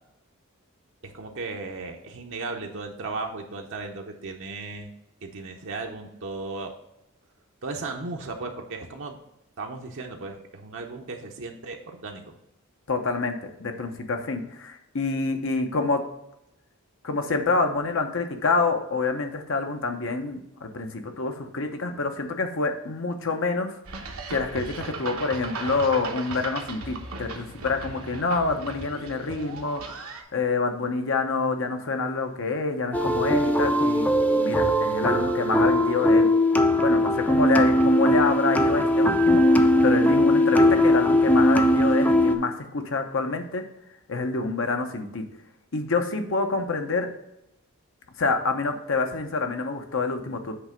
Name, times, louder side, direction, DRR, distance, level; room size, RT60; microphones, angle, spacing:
voice 1, 1.0-4.9 5.2-6.7 7.6-9.2 9.6-12.3, right 3 dB, 60° right, 2 dB, 0.8 m, -36 dB
voice 2, 12.9-16.0 17.0-23.7 24.3-34.1 34.3-36.3 36.8-43.6 44.1-45.2 45.7-47.1 48.2-50.5, left 3 dB, 65° left, 5 dB, 0.9 m, -27 dB
sound 1, 23.8-30.2, right 3 dB, 80° right, 1.0 m, -37 dB
sound 2, 32.9-42.3, left 1 dB, 5° left, 0.5 m, -20 dB
7.9 x 3.3 x 5.1 m, 0.86 s
head